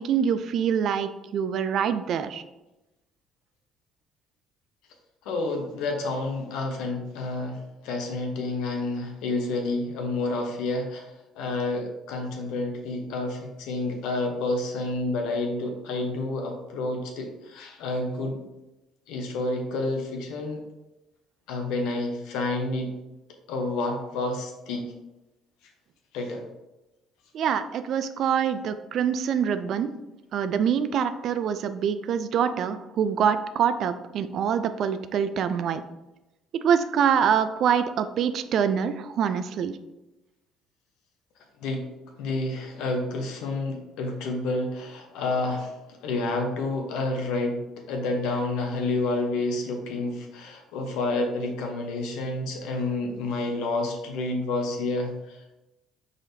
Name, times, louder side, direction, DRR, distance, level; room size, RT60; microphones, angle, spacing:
voice 1, 0.0-2.4 27.3-29.9 30.3-35.8 36.5-39.8, right 8 dB, 60° right, 11 dB, 0.3 m, -25 dB
voice 2, 5.2-18.4 19.1-20.6 21.5-22.9 23.5-24.9 26.1-26.4 41.6-41.9 42.2-45.8 46.0-55.6, left 2 dB, 80° left, 3 dB, 0.9 m, -29 dB
4.9 x 4.0 x 2.7 m, 0.97 s
supercardioid pair, 80°, 0 cm